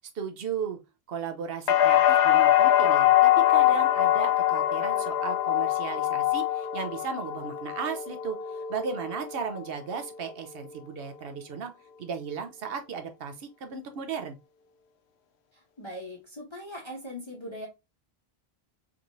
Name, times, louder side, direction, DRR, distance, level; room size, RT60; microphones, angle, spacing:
voice 1, 0.2-0.8 1.1-11.7 12.0-14.4, right 6 dB, 70° right, 0.8 m, -35 dB
sound 1, 1.7-9.6 9.9-10.6, left 12 dB, 80° left, 0.9 m, -23 dB
voice 2, 15.8-17.7, left 1 dB, 30° left, 0.8 m, -40 dB
3.5 x 3.0 x 2.5 m
omnidirectional pair, 1.1 m